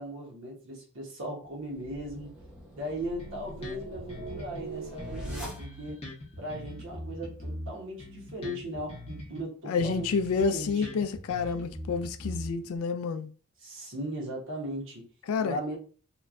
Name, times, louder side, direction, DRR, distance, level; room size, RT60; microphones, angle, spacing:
voice 1, 0.0-2.3 2.7-6.0 6.4-10.2 10.4-10.9 13.6-15.0 15.4-15.8, equal, 60° right, 0.9 m, -38 dB
sound 1, 1.5-6.1, right 2 dB, 5° right, 0.7 m, -42 dB
Bass guitar, 3.2-4.6 5.0-9.4 9.8-12.8, left 1 dB, 30° left, 0.7 m, -42 dB
voice 2, 9.7-13.3 15.3-15.6, left 5 dB, 65° left, 0.3 m, -29 dB
3.0 x 2.2 x 2.4 m
head